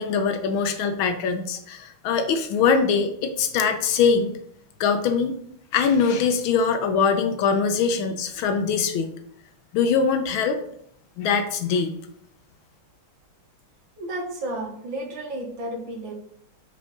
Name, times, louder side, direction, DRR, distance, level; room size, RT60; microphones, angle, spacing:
voice 1, 0.0-4.3 4.8-5.3 5.7-9.1 9.7-10.6 11.2-11.9, left 5 dB, 75° left, 7 dB, 1.4 m, -22 dB
voice 2, 14.0-16.1, right 1 dB, 60° right, 0 dB, 2.1 m, -32 dB
5.3 x 4.8 x 5.3 m, 0.69 s
omnidirectional pair, 2.4 m